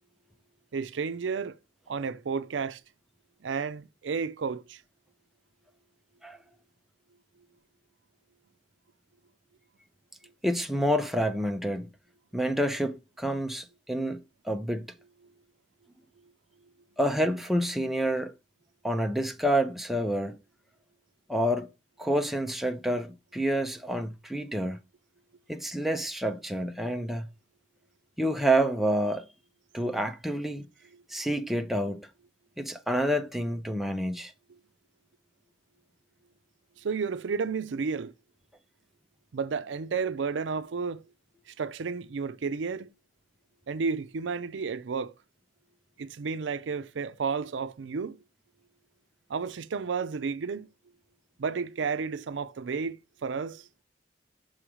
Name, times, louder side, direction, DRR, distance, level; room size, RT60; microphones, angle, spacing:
voice 1, 0.7-1.6 1.9-2.8 3.4-4.8 36.8-38.1 39.3-41.0 41.6-42.9 43.7-45.1 46.0-48.2 49.3-50.7 51.4-53.7, right 5 dB, 85° right, 0.5 m, -32 dB
voice 2, 10.4-11.9 12.3-14.2 14.4-14.9 17.0-18.3 18.8-20.4 21.3-21.7 22.0-24.8 25.5-27.3 28.2-29.2 29.7-30.7 31.1-32.0 32.6-34.3, right 1 dB, ahead, 0.5 m, -28 dB
6.1 x 3.1 x 4.9 m
head